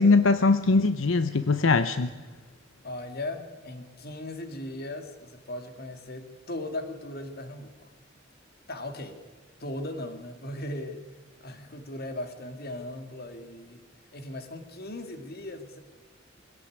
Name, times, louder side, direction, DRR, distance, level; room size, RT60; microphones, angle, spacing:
voice 1, 0.0-2.1, left 3 dB, 80° left, 11 dB, 0.8 m, -21 dB
voice 2, 2.8-7.9 8.7-9.2 9.6-11.1 11.4-13.8 14.1-15.8, left 1 dB, 50° left, 7 dB, 2.5 m, -38 dB
24.5 x 17.5 x 9.5 m, 1.3 s
head